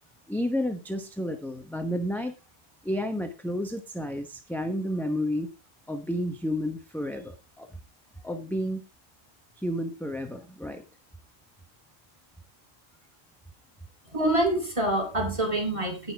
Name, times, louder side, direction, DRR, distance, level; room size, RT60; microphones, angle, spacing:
voice 1, 0.3-2.3 2.8-5.5 5.9-7.7 8.2-8.8 9.6-10.8, equal, ahead, 5 dB, 0.8 m, -31 dB
voice 2, 14.1-16.1, right 1 dB, 25° right, 2 dB, 4.0 m, -26 dB
18.0 x 6.4 x 3.4 m, 0.28 s
omnidirectional pair, 1.3 m